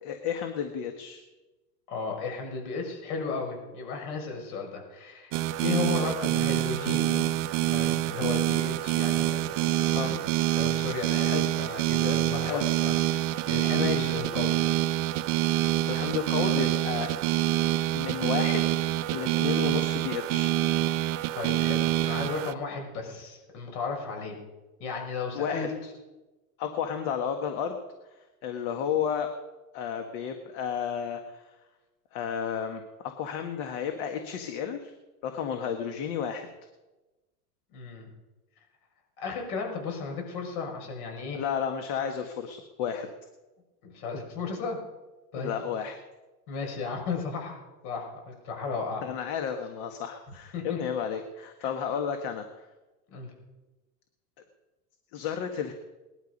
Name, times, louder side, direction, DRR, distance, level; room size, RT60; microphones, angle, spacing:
voice 1, 0.0-1.2 9.9-10.1 11.2-11.5 12.4-12.7 13.8-14.1 15.8-17.4 17.9-18.7 19.1-20.5 25.3-25.7 26.6-27.8 28.4-29.3 29.7-31.5 32.1-34.9 35.2-36.5 41.3-43.1 45.4-46.0 49.0-52.7 55.1-55.7, left 8 dB, 50° left, 6 dB, 1.7 m, -32 dB
voice 2, 1.9-5.3 5.6-7.2 7.6-10.2 10.6-14.6 21.3-24.3 24.8-25.7 37.7-38.1 39.2-41.4 43.8-44.8 45.3-45.5 46.5-47.6 47.8-49.0 50.5-50.8 51.6-51.7 53.1-53.3, left 4 dB, 65° left, 2 dB, 6.2 m, -34 dB
sound 1, 5.3-22.5, right 14 dB, 45° right, 0.7 m, -26 dB
19.5 x 12.0 x 5.4 m, 1.1 s
supercardioid pair, 135°, 47 cm